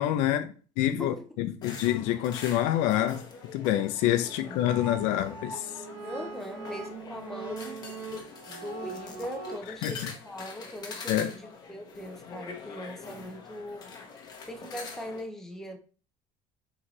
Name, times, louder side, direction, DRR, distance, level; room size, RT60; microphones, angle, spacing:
voice 1, 0.0-3.2 3.5-5.7 9.8-10.1 11.1-11.3, left 12 dB, 80° left, 0.5 m, -27 dB
sound 1, 1.6-15.2, left 5 dB, 35° left, 0.9 m, -44 dB
sound 2, 4.2-9.5, right 3 dB, 70° right, 1.8 m, -41 dB
voice 2, 4.4-5.1 6.0-7.8 8.5-13.9 14.5-15.8, equal, 5° left, 0.6 m, -40 dB
4.4 x 3.8 x 3.1 m
cardioid pair, 155°, 12 cm